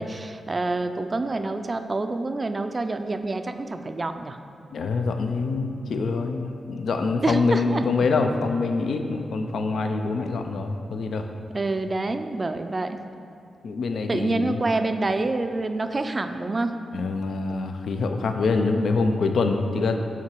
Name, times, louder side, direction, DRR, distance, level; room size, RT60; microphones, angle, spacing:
voice 1, 0.0-4.4 7.2-7.9 11.5-13.0 13.9-16.7 17.5-17.6, right 2 dB, 35° right, 8 dB, 0.3 m, -27 dB
voice 2, 4.7-11.3 13.6-14.6 16.9-20.0, left 4 dB, 75° left, 5 dB, 0.4 m, -25 dB
5.8 x 3.9 x 4.5 m, 2.4 s
cardioid pair, 75°, 0 cm